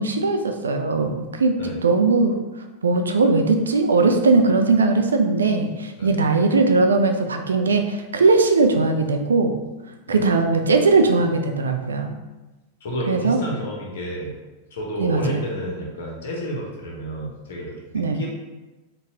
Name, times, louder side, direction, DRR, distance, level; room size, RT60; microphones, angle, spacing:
voice 1, 0.0-1.6 1.8-2.4 2.8-9.5 10.1-12.1 13.1-13.4 15.0-15.4 17.9-18.2, right 3 dB, 70° right, 5 dB, 0.3 m, -19 dB
voice 2, 12.8-14.3 14.7-18.3, equal, 60° left, -2 dB, 0.9 m, -30 dB
3.9 x 2.3 x 2.8 m, 1.1 s
figure-of-eight pair, 90°, 0 cm